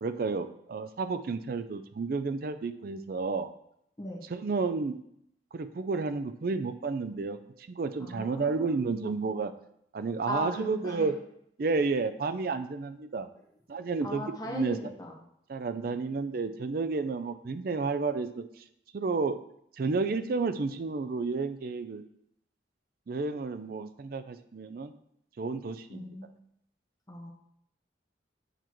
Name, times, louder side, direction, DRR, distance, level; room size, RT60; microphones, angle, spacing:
voice 1, 0.0-3.5 4.3-5.0 5.5-9.5 9.9-11.1 11.6-13.3 13.7-14.8 15.5-18.6 18.9-19.4 19.8-22.0 23.1-24.9 25.4-26.2, right 4 dB, 50° right, 11 dB, 0.4 m, -31 dB
voice 2, 8.0-8.8 10.3-11.1 14.0-15.1 25.9-26.3 27.1-27.3, left 1 dB, 20° left, -2 dB, 1.2 m, -38 dB
9.0 x 4.4 x 3.0 m, 0.74 s
head